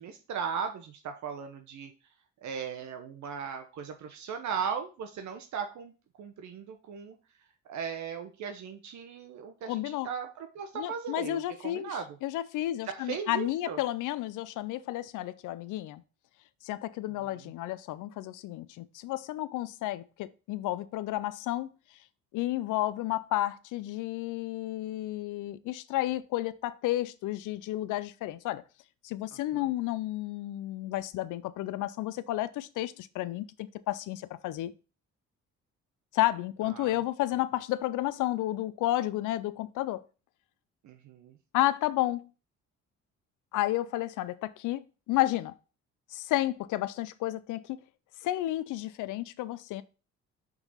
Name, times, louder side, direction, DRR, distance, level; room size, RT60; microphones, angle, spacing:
voice 1, 0.0-1.9 2.4-5.9 6.2-7.2 7.7-12.1 12.8-13.8 17.2-17.4 29.5-29.7 36.6-37.0 40.8-41.3, right 6 dB, 70° right, 0.9 m, -37 dB
voice 2, 9.6-10.1 10.8-16.0 16.6-21.7 22.3-28.6 29.0-34.7 36.1-40.0 41.5-42.3 43.5-44.8 45.1-45.5 46.1-47.8 48.2-49.8, left 15 dB, 85° left, 0.5 m, -31 dB
5.9 x 3.9 x 5.6 m
cardioid pair, 90°, 30 cm